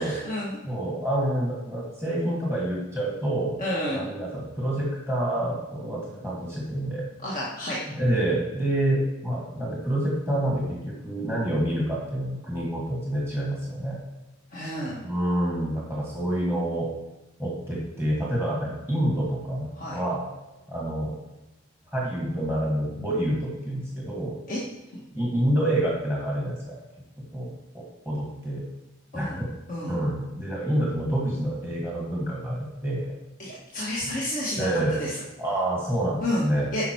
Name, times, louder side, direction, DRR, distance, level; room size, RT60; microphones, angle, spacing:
voice 1, 0.0-0.6 3.6-4.1 7.2-7.8 14.5-15.0 19.8-20.0 24.5-24.6 29.1-29.4 29.7-30.0 33.4-35.2 36.2-36.4 36.7-36.8, left 1 dB, 40° left, -6 dB, 1.5 m, -30 dB
voice 2, 0.6-3.6 3.9-7.0 7.9-14.0 15.0-16.9 17.4-20.3 20.7-21.2 21.9-24.4 25.1-26.8 27.2-28.6 29.1-29.5 29.9-33.1 34.0-34.2 34.6-34.9 35.4-36.7, right 1 dB, 10° left, -5 dB, 1.7 m, -27 dB
9.1 x 5.5 x 4.6 m, 1.1 s
head